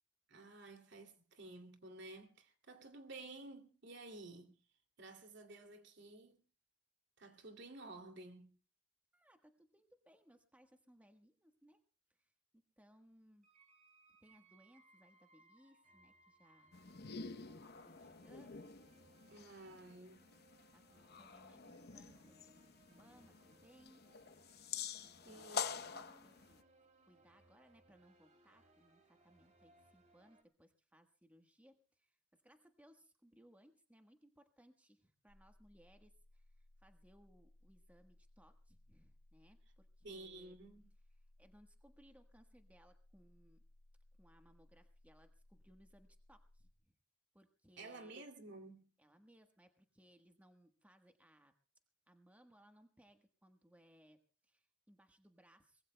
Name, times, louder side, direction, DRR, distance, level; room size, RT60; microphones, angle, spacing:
voice 1, 0.3-4.6 5.0-6.4 7.2-8.6 19.3-20.2 25.2-26.1 40.0-40.9 47.8-48.9, right 2 dB, 60° right, 2.6 m, -53 dB
voice 2, 9.1-11.8 12.1-13.5 14.2-16.7 17.3-17.6 17.8-18.8 19.7-20.2 20.7-24.0 25.0-25.8 26.2-40.6 41.4-43.6 44.2-46.7 47.3-48.2 49.0-51.5 52.1-55.9, equal, 10° right, 1.3 m, -67 dB
sound 1, 13.4-30.4, right 2 dB, 35° right, 2.9 m, -69 dB
sound 2, 16.7-26.6, left 6 dB, 55° left, 0.8 m, -48 dB
sound 3, 35.3-46.7, left 1 dB, 85° left, 1.3 m, -66 dB
24.0 x 21.0 x 2.2 m
head